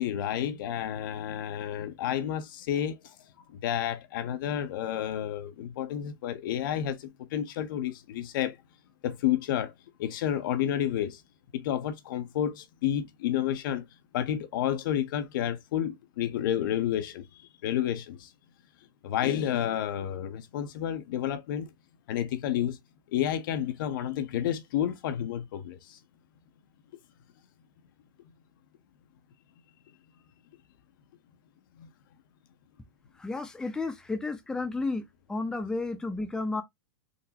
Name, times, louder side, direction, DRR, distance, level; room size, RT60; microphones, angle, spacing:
voice 1, 0.0-3.2 3.5-8.6 9.0-9.7 10.0-11.2 11.5-13.9 14.1-18.3 19.0-21.7 22.1-22.8 23.1-26.0 31.8-31.9, left 10 dB, 65° left, 0.6 m, -30 dB
voice 2, 33.2-35.0 35.3-36.6, left 3 dB, 5° left, 0.5 m, -32 dB
3.8 x 2.1 x 2.7 m
hypercardioid pair, 125°, 12 cm